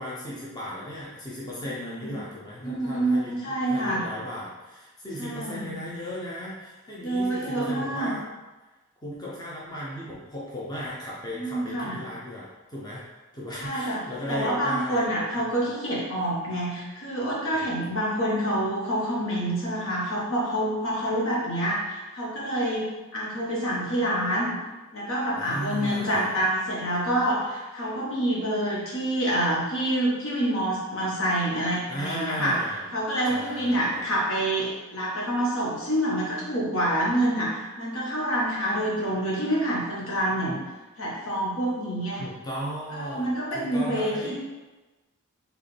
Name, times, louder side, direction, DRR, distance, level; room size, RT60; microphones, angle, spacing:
voice 1, 0.0-3.4 3.7-8.2 9.0-13.0 13.3-15.1 15.4-15.5 17.5-18.0 25.3-26.4 31.9-33.0 33.3-34.1 42.2-44.3, equal, 20° left, -6 dB, 0.7 m, -36 dB
voice 2, 1.6-2.1 2.6-4.0 5.2-5.8 7.0-8.1 11.3-12.0 13.6-14.0 14.3-22.9 23.1-24.5 24.9-32.6 32.9-40.6 41.0-42.2 42.9-44.3, right 1 dB, 65° left, -5 dB, 1.4 m, -27 dB
4.6 x 3.4 x 3.4 m, 1.2 s
head